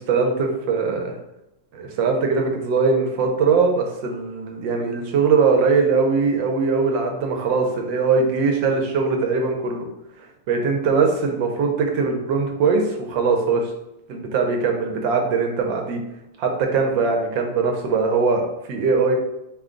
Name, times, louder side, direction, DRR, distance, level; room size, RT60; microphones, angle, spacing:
voice 1, 0.1-1.1 1.7-9.8 10.5-13.7 14.1-16.0 16.4-19.1, right 4 dB, 85° right, 3 dB, 1.5 m, -21 dB
5.0 x 2.3 x 3.7 m, 0.91 s
omnidirectional pair, 2.0 m